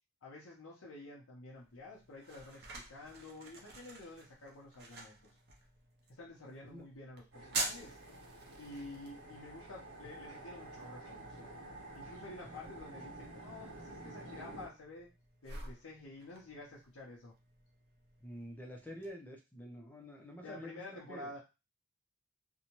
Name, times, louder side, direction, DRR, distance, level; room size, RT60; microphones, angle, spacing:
voice 1, 0.2-5.3 6.2-8.0 8.6-11.5 11.9-15.1 15.4-17.3 20.4-21.4, left 2 dB, 90° left, -4 dB, 0.7 m, -50 dB
sound 1, 1.5-19.1, right 3 dB, 50° right, 0.6 m, -48 dB
sound 2, 7.3-14.7, right 2 dB, 65° right, 1.1 m, -50 dB
voice 2, 18.2-21.3, equal, 10° left, 1 dB, 0.5 m, -48 dB
2.7 x 2.2 x 2.9 m, 0.27 s
head